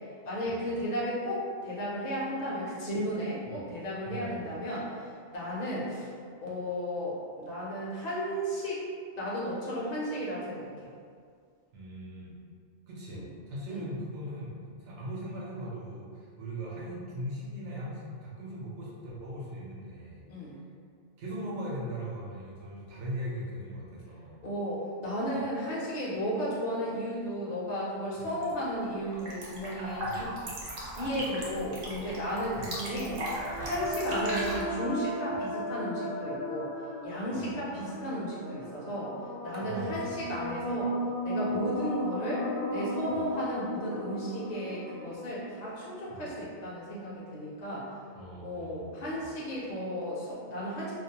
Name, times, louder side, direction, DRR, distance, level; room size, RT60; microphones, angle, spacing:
voice 1, 0.2-5.1 5.3-6.1 6.4-8.8 9.2-10.9 13.1-13.2 13.7-13.8 20.3-20.6 24.4-30.3 31.0-33.2 33.6-36.7 37.0-39.1 39.4-41.0 41.2-47.9 48.4-50.9, equal, 50° left, -6 dB, 0.6 m, -34 dB
voice 2, 4.1-4.5 11.7-12.4 12.9-14.5 14.8-20.5 21.2-24.4 28.2-28.3 30.0-30.4 32.6-32.7 33.8-33.9 35.3-35.4 37.3-37.7 39.6-40.7 41.5-41.7 43.1-43.3 46.1-46.3 48.1-49.3, equal, 90° right, -5 dB, 1.0 m, -40 dB
sound 1, 28.3-28.6 28.9-34.6, right 1 dB, 60° right, 0.7 m, -37 dB
sound 2, 32.8-46.4, left 1 dB, 70° left, 0.8 m, -36 dB
2.5 x 2.0 x 2.7 m, 2.1 s
omnidirectional pair, 1.2 m